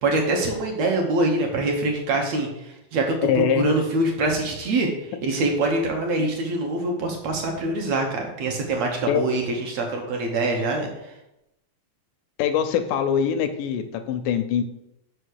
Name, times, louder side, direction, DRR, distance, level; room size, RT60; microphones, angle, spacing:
voice 1, 0.0-10.9, right 2 dB, 60° right, 2 dB, 1.9 m, -24 dB
voice 2, 3.3-3.7 9.1-9.2 12.4-14.6, left 8 dB, 80° left, 8 dB, 1.9 m, -23 dB
6.5 x 5.6 x 6.4 m, 0.86 s
omnidirectional pair, 4.2 m